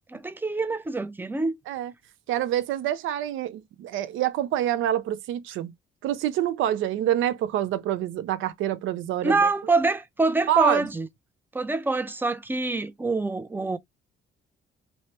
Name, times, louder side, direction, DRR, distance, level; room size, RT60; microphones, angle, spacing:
voice 1, 0.1-1.6 9.2-11.1 11.5-13.8, right 3 dB, 10° right, 0.4 m, -25 dB
voice 2, 2.3-5.7 6.0-9.5 10.5-10.8, right 12 dB, 80° right, 0.5 m, -26 dB
3.2 x 2.0 x 2.8 m
cardioid pair, 90°, 20 cm